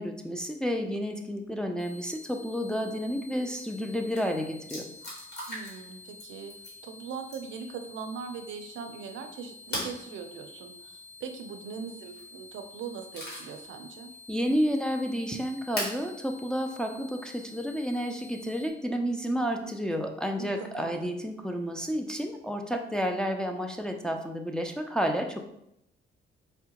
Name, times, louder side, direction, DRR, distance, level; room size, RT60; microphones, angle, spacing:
voice 1, 0.0-4.9 14.3-25.4, equal, 5° left, 3 dB, 0.3 m, -31 dB
sound 1, 1.8-18.7, left 3 dB, 80° left, 0.9 m, -50 dB
sound 2, 3.8-3.9 4.1-4.2 4.7-5.9 6.2-6.8 7.3-7.6 9.7-10.0 11.9-12.3 12.8-13.6 14.1-14.2 15.8-16.0 17.2-17.3 19.3-19.7, left 1 dB, 55° left, 1.5 m, -37 dB
voice 2, 5.5-6.5 6.8-14.1 20.4-21.1, right 6 dB, 70° right, 6 dB, 0.5 m, -40 dB
4.5 x 2.1 x 2.8 m, 0.79 s
cardioid pair, 90°, 20 cm